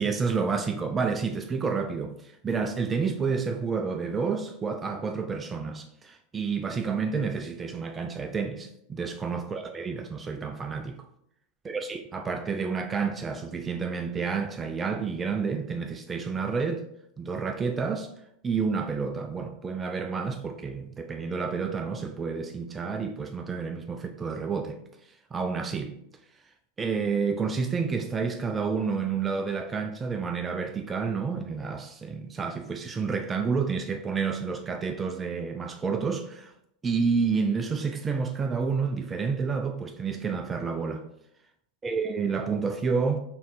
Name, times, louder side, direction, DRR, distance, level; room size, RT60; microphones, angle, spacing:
voice 1, 0.0-11.0 11.6-16.8 17.2-18.1 18.4-24.8 25.3-25.9 26.8-36.5 36.8-41.0 41.8-43.2, right 5 dB, 20° right, 0.4 m, -29 dB
4.0 x 3.1 x 4.0 m
figure-of-eight pair, 90°, 0 cm